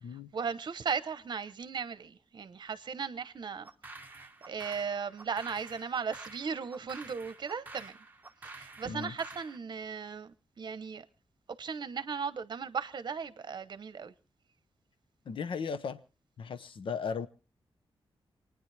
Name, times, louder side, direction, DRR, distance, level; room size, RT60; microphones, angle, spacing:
voice 1, 0.1-3.7 4.0-7.9 8.4-11.0 11.6-14.1, right 6 dB, 50° right, 0.9 m, -37 dB
sound 1, 3.6-9.6, right 3 dB, 20° right, 1.0 m, -49 dB
voice 2, 15.3-16.0 16.4-17.3, left 5 dB, 65° left, 0.8 m, -36 dB
28.0 x 9.7 x 3.3 m
wide cardioid pair, 150°, 9 cm